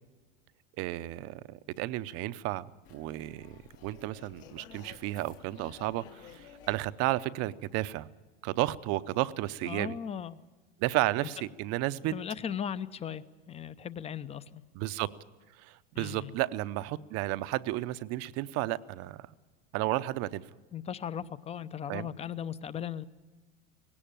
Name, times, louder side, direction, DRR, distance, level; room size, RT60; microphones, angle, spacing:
voice 1, 0.8-8.1 8.4-9.9 10.8-12.1 14.7-15.1 15.6-19.3 19.7-20.4 21.9-22.1, right 16 dB, 50° right, 15 dB, 0.7 m, -33 dB
sound 1, 2.8-8.0, left 8 dB, 60° left, 1.8 m, -54 dB
voice 2, 9.7-10.4 12.1-14.6 15.9-16.3 20.7-23.0, left 8 dB, 20° left, 16 dB, 0.6 m, -37 dB
18.0 x 17.0 x 9.0 m, 1.3 s
supercardioid pair, 125°, 31 cm